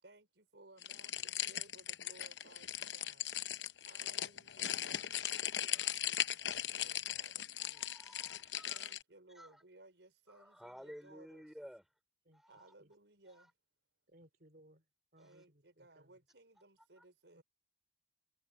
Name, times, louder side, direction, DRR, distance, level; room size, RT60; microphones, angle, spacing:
voice 1, 0.0-3.3 3.8-7.9 8.7-11.4 12.5-13.5 15.2-17.4, right 2 dB, 90° right, 5.0 m, -62 dB
sound 1, 0.8-9.0, left 11 dB, 85° left, 0.8 m, -39 dB
voice 2, 5.7-6.3 7.6-8.9 9.3-9.6 10.3-11.9 12.3-12.7 13.3-13.5 15.2-15.3 17.0-17.1, equal, ahead, 4.6 m, -55 dB
voice 3, 14.1-14.8 15.1-16.2 17.3-17.4, right 1 dB, 55° right, 3.5 m, -64 dB
head